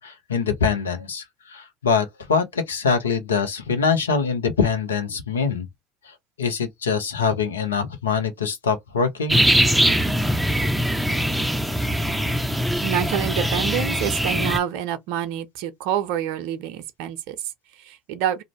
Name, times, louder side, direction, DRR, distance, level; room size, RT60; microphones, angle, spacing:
voice 1, 0.0-5.7 6.0-9.4, left 5 dB, 85° left, 0.6 m, -24 dB
sound 1, 9.3-14.6, equal, 5° right, 0.4 m, -22 dB
voice 2, 12.8-18.4, right 10 dB, 65° right, 0.4 m, -27 dB
2.5 x 2.0 x 3.0 m
hypercardioid pair, 65°, 0 cm